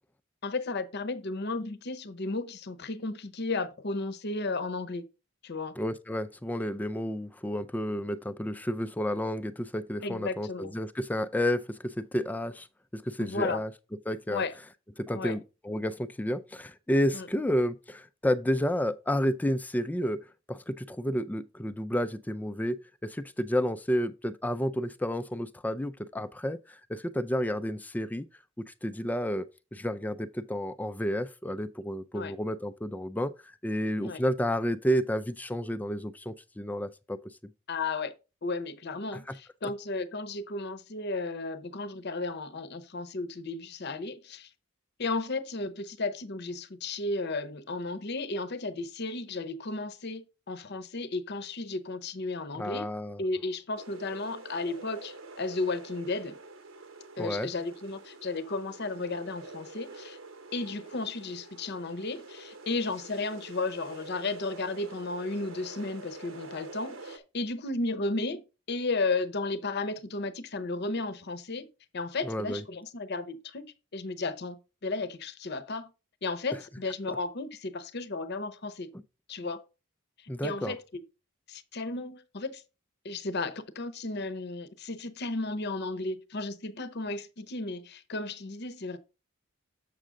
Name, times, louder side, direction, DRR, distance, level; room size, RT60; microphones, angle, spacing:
voice 1, 0.4-5.0 5.4-5.7 10.0-10.7 13.2-13.6 14.3-14.5 15.1-15.3 17.1-17.3 32.1-32.3 34.0-34.2 37.7-38.1 38.4-44.5 45.0-52.9 53.2-56.4 57.2-60.2 60.5-71.7 71.9-75.9 76.2-78.9 79.3-79.6 80.4-81.0 81.5-82.6 83.0-89.0, left 3 dB, 55° left, 0.8 m, -34 dB
voice 2, 5.8-12.7 12.9-13.7 14.1-14.4 15.0-20.2 20.5-28.3 28.7-29.5 29.7-37.2 39.1-39.3 52.5-53.2 57.2-57.5 72.2-72.6 78.9-79.0 80.3-80.7, equal, 10° left, 0.3 m, -31 dB
sound 1, 53.8-67.2, right 3 dB, 70° right, 1.1 m, -46 dB
7.5 x 6.3 x 3.7 m
head